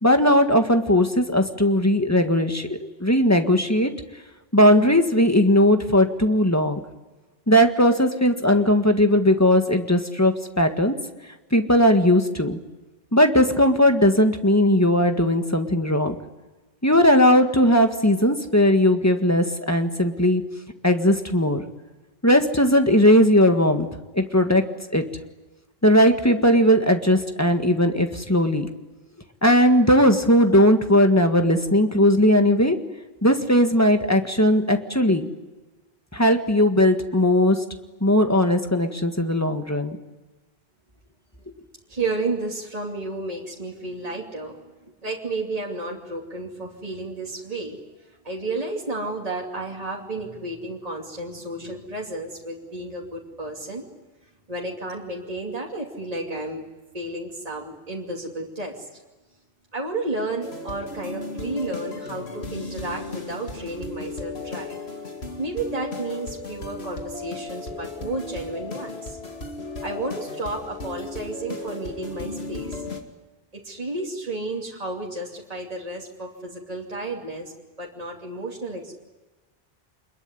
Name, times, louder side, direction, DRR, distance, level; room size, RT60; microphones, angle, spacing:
voice 1, 0.0-3.9 4.5-6.8 7.5-11.0 11.5-12.6 13.1-16.2 16.8-20.4 20.8-21.6 22.2-23.9 24.1-24.6 24.9-25.0 25.8-28.7 29.4-32.8 33.2-35.3 36.1-37.6 38.0-40.0, left 1 dB, 15° left, 6 dB, 1.7 m, -18 dB
voice 2, 41.9-44.6 45.0-47.8 48.2-53.9 54.5-56.6 56.9-58.9 59.7-64.8 65.4-69.2 69.8-72.8 73.5-77.5 77.8-78.9, right 2 dB, 40° right, -2 dB, 2.8 m, -32 dB
sound 1, 60.4-73.0, left 2 dB, 90° left, 2.6 m, -35 dB
27.0 x 21.5 x 9.8 m, 1.2 s
omnidirectional pair, 1.0 m